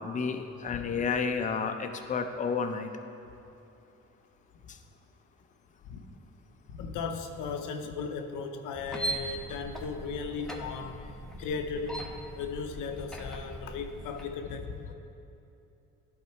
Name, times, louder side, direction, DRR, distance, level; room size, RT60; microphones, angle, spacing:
voice 1, 0.0-2.9, left 5 dB, 25° left, 6 dB, 0.5 m, -31 dB
voice 2, 0.7-1.0 5.8-6.0 6.7-11.0 11.4-12.1 12.4-14.9, left 5 dB, 90° left, 6 dB, 0.6 m, -36 dB
sound 1, 8.7-14.3, right 1 dB, ahead, 0.9 m, -40 dB
11.0 x 3.7 x 4.5 m, 2.8 s
cardioid pair, 90°, 30 cm